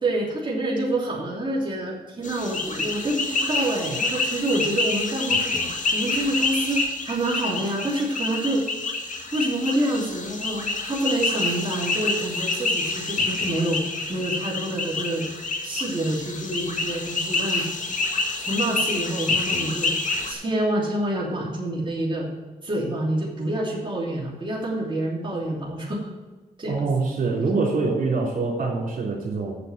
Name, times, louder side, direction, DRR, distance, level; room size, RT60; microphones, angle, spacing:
voice 1, 0.0-8.6 9.3-15.3 15.6-17.9 18.4-19.9 20.3-22.3 22.6-26.1 26.6-26.9, right 1 dB, 30° right, -4 dB, 3.1 m, -27 dB
sound 1, 2.2-20.3, left 3 dB, 50° left, 1.9 m, -27 dB
voice 2, 26.7-29.6, right 3 dB, 55° right, -3 dB, 3.5 m, -24 dB
7.6 x 6.8 x 7.4 m, 1.2 s
hypercardioid pair, 40°, 17 cm